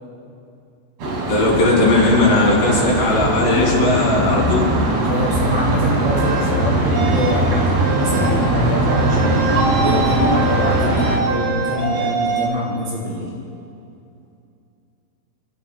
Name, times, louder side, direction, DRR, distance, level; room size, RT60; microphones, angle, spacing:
sound 1, 1.0-11.2, right 1 dB, 45° right, 2.8 m, -20 dB
voice 1, 1.3-4.6, left 2 dB, 60° left, -4 dB, 4.4 m, -17 dB
sound 2, 3.6-7.5, left 9 dB, 80° left, 2.5 m, -31 dB
voice 2, 5.0-13.3, equal, 60° right, -7 dB, 5.0 m, -24 dB
sound 3, 6.1-6.5 6.9-7.4 7.8-8.3 8.9-12.5, right 3 dB, 90° right, 3.8 m, -24 dB
28.0 x 15.0 x 2.2 m, 2.6 s
omnidirectional pair, 5.0 m